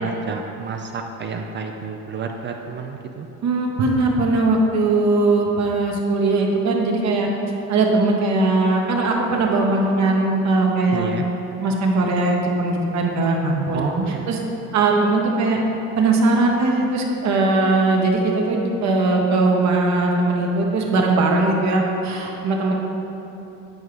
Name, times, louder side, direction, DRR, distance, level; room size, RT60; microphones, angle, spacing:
voice 1, 0.0-3.3 10.9-11.3 13.7-14.3, right 5 dB, 35° right, 3 dB, 0.4 m, -29 dB
voice 2, 3.4-7.3 7.7-11.1 11.6-13.8 14.3-14.4 14.7-15.6 16.0-22.7, right 2 dB, 50° right, 0 dB, 1.0 m, -19 dB
8.9 x 4.6 x 3.2 m, 3.0 s
supercardioid pair, 85°, 35 cm